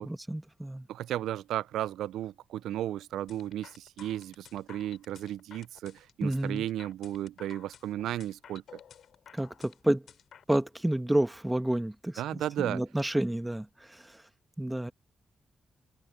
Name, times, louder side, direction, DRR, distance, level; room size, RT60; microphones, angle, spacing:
voice 1, 0.0-0.9 6.2-6.6 9.3-10.0 10.5-14.1 14.6-14.9, right 1 dB, 10° right, 1.6 m, -30 dB
voice 2, 0.9-8.6 12.2-12.8, right 12 dB, 85° right, 0.3 m, -34 dB
sound 1, 3.3-10.7, left 8 dB, 75° left, 2.7 m, -53 dB
open air
supercardioid pair, 50°, 0 cm